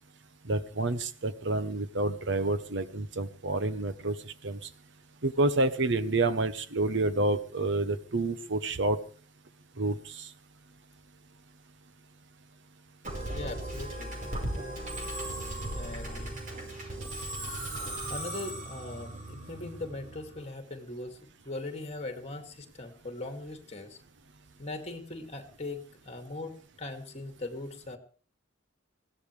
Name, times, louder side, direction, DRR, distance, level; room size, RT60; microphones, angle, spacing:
voice 1, 0.5-4.6 5.2-9.0 9.8-10.3, right 2 dB, 65° right, 12 dB, 1.0 m, -29 dB
Musical instrument, 13.0-20.4, right 1 dB, 40° right, 4.8 m, -37 dB
voice 2, 13.3-14.2 15.7-16.4 18.1-21.2 21.4-24.0 24.6-28.0, left 2 dB, 35° left, 5 dB, 2.5 m, -40 dB
20.5 x 16.5 x 3.4 m, 0.40 s
head